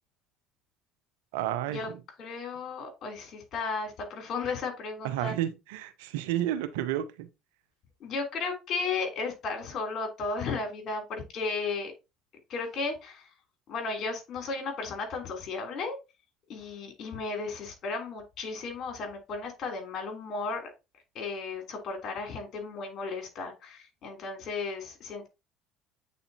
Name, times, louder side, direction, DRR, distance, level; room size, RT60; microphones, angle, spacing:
voice 1, 1.3-2.0 5.0-7.3, right 12 dB, 80° right, 0.7 m, -31 dB
voice 2, 2.2-5.3 8.0-11.9 12.5-13.3 13.7-16.0 16.5-20.7 21.1-25.3, left 4 dB, 50° left, 3.1 m, -34 dB
8.4 x 4.1 x 2.8 m
hypercardioid pair, 75°, 0 cm